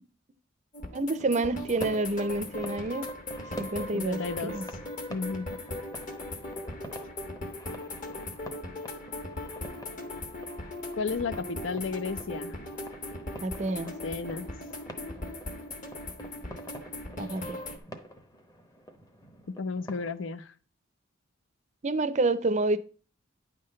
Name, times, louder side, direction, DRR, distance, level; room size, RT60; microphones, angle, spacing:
sound 1, 0.7-17.8, left 1 dB, 40° left, 1.2 m, -39 dB
voice 1, 0.9-3.1 3.6-4.7 13.4-13.9 17.2-17.6 21.8-22.8, right 2 dB, 35° right, 0.5 m, -28 dB
sound 2, 1.2-20.2, equal, 20° left, 0.8 m, -48 dB
voice 2, 3.9-4.5 5.1-5.6 11.0-12.6 13.8-14.5 19.6-20.5, left 4 dB, 70° left, 0.5 m, -33 dB
9.7 x 3.8 x 6.4 m
head